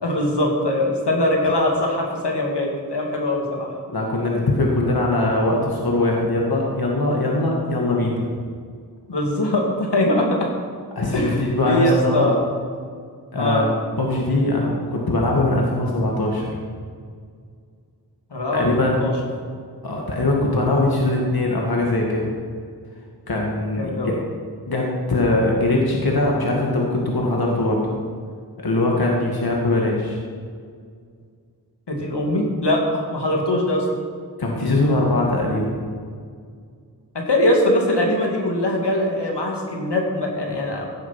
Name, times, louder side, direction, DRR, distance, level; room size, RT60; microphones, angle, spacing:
voice 1, 0.0-3.7 9.1-10.5 11.1-12.4 13.4-13.6 18.3-19.1 23.7-24.1 31.9-33.9 37.1-40.9, left 1 dB, 85° left, 0 dB, 2.5 m, -22 dB
voice 2, 3.9-8.2 11.0-12.3 13.3-13.6 14.0-16.6 18.5-19.1 19.8-22.3 23.3-24.1 24.7-27.8 28.6-30.2 34.4-35.8, left 2 dB, 65° left, -2 dB, 2.1 m, -21 dB
16.0 x 7.8 x 5.9 m, 2.1 s
wide cardioid pair, 45°, 40 cm